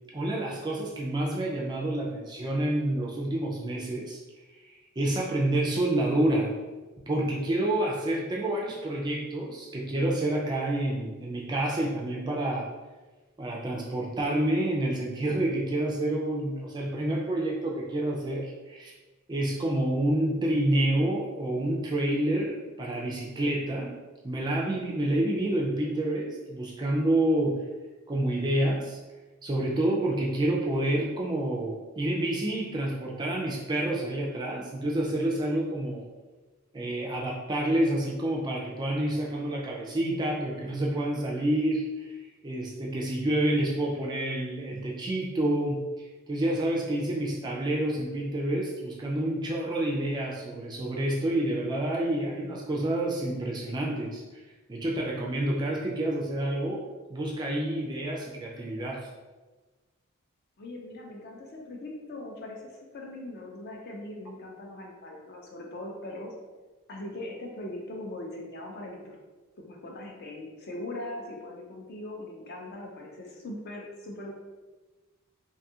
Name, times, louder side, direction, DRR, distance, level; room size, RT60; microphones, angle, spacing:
voice 1, 0.1-4.2 4.6-6.5 7.1-12.7 13.4-18.9 19.3-23.9 24.2-27.6 28.1-29.0 29.4-36.0 36.7-54.4 54.7-56.8 57.1-59.1, right 1 dB, 20° right, -2 dB, 0.3 m, -28 dB
voice 2, 60.6-66.3 66.9-69.2 69.6-74.3, left 1 dB, 45° left, 0 dB, 0.5 m, -40 dB
2.6 x 2.3 x 2.7 m, 1.2 s
head